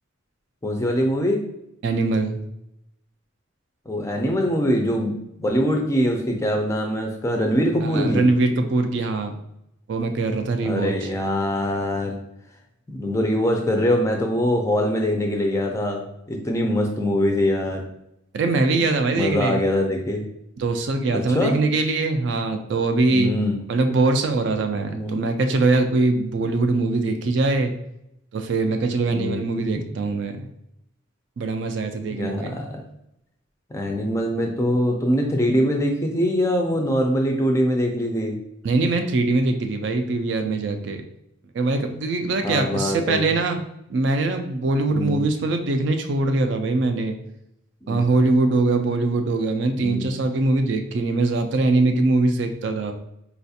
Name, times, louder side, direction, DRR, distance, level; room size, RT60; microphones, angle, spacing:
voice 1, 0.6-1.4 3.9-8.2 10.6-12.2 12.9-17.8 19.2-20.3 21.3-21.6 23.1-23.5 24.9-25.2 29.1-29.4 32.1-32.8 33.7-38.4 42.4-43.3 44.9-45.2 47.8-48.0 49.8-50.1, equal, 15° left, 2 dB, 0.4 m, -23 dB
voice 2, 1.8-2.4 7.8-9.3 9.9-11.1 18.3-19.6 20.6-23.3 23.7-27.7 28.3-30.5 31.4-32.6 38.6-41.0 41.5-43.6 43.9-47.2 47.9-52.9, right 3 dB, 60° right, 6 dB, 0.3 m, -22 dB
4.1 x 2.4 x 2.7 m, 0.81 s
head